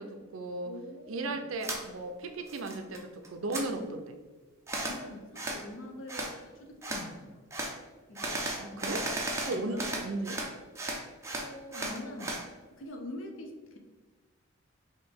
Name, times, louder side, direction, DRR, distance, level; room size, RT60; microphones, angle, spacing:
voice 1, 0.0-0.7 1.1-4.2 8.6-9.0 9.5-10.4, right 2 dB, 65° right, 7 dB, 0.5 m, -36 dB
voice 2, 0.6-1.4 4.7-7.4 8.1-8.4 8.7-8.9 9.4-9.9 11.4-12.4 12.6-13.8, left 1 dB, 60° left, 3 dB, 0.6 m, -44 dB
sound 1, 1.6-1.8 2.2-3.0 3.2-3.6 4.7-5.0 5.3-5.6 6.1-6.3 6.8-7.0 7.5-7.7 8.1-10.5 10.7-12.4, right 2 dB, 15° right, 0.5 m, -35 dB
4.9 x 2.6 x 3.4 m, 1.3 s
head